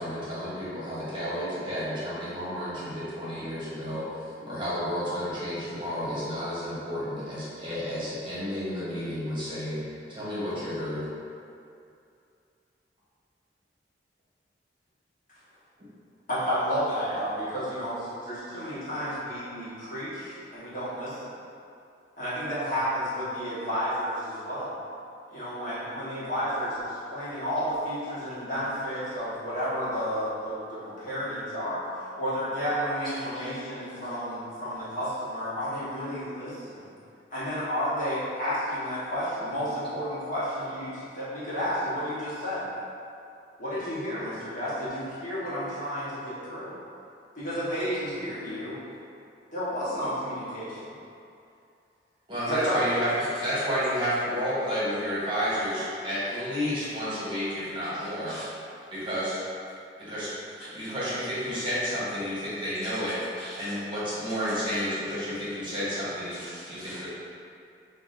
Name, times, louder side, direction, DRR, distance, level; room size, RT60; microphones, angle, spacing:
voice 1, 0.0-9.8 10.1-11.1 15.8-15.9 52.3-58.3 58.9-59.4 60.0-60.3 60.7-63.1 63.6-66.4 66.7-67.1, equal, 25° right, -10 dB, 1.0 m, -31 dB
voice 2, 16.3-21.3 22.2-24.7 25.3-31.9 32.2-36.8 37.3-42.7 43.6-46.7 47.4-48.8 49.5-50.8 52.5-52.8, equal, 45° left, -11 dB, 1.1 m, -31 dB
voice 3, 33.0-33.5 33.8-34.1 49.8-50.0 53.3-53.5 57.8-59.2 60.6-61.1 61.5-61.6 62.6-63.8 64.4-64.6 65.5-65.6 66.3-67.1, equal, 5° left, -15 dB, 0.8 m, -46 dB
5.7 x 2.3 x 2.5 m, 2.5 s
head